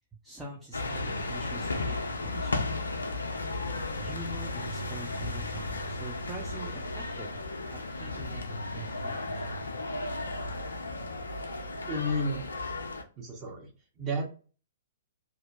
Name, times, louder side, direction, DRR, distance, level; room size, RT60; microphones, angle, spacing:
voice 1, 0.2-2.6 4.0-7.3 7.7-9.5, right 2 dB, 5° right, -3 dB, 0.5 m, -44 dB
sound 1, 0.7-13.0, left 2 dB, 75° left, 0.5 m, -34 dB
voice 2, 11.9-12.4 13.2-13.7 14.0-14.2, equal, 25° right, -1 dB, 0.9 m, -31 dB
2.6 x 2.1 x 2.5 m, 0.37 s
figure-of-eight pair, 115°, 0 cm